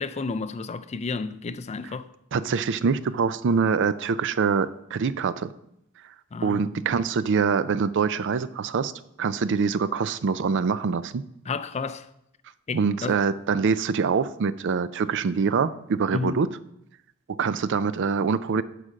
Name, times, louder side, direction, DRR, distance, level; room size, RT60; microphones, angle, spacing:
voice 1, 0.0-2.1 6.3-6.8 11.5-12.1 12.7-13.2 16.1-16.4, left 4 dB, 30° left, 0.4 m, -31 dB
voice 2, 2.3-5.5 6.4-8.9 9.2-11.2 12.7-16.5 17.3-18.6, right 5 dB, 55° right, 0.4 m, -24 dB
8.4 x 5.0 x 6.3 m
head